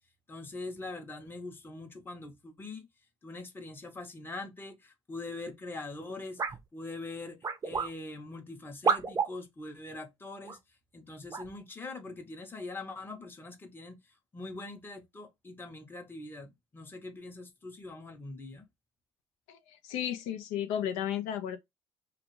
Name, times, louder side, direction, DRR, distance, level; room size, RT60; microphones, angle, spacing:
voice 1, 0.3-2.9 3.2-6.4 6.7-10.6 10.9-14.0 14.3-18.7, left 2 dB, 15° left, 0.7 m, -43 dB
sound 1, 6.4-6.6 7.4-7.9 8.8-9.3 10.4-10.6 11.3-11.5, right 5 dB, 30° right, 0.5 m, -29 dB
voice 2, 19.5-21.6, left 10 dB, 80° left, 0.5 m, -34 dB
2.4 x 2.4 x 3.0 m
supercardioid pair, 75°, 12 cm